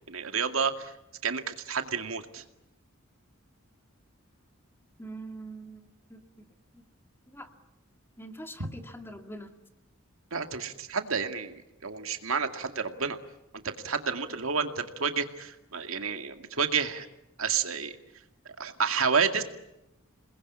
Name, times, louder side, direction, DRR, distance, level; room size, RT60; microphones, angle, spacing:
voice 1, 0.1-0.9 1.2-2.4 8.6-8.7 10.3-13.2 13.5-17.1 17.4-17.9 18.6-19.4, right 5 dB, 80° right, 6 dB, 2.2 m, -30 dB
voice 2, 5.0-6.5 6.7-6.8 7.3-7.5 8.2-9.6, right 1 dB, 10° left, 6 dB, 2.2 m, -44 dB
28.5 x 21.0 x 10.0 m, 0.91 s
head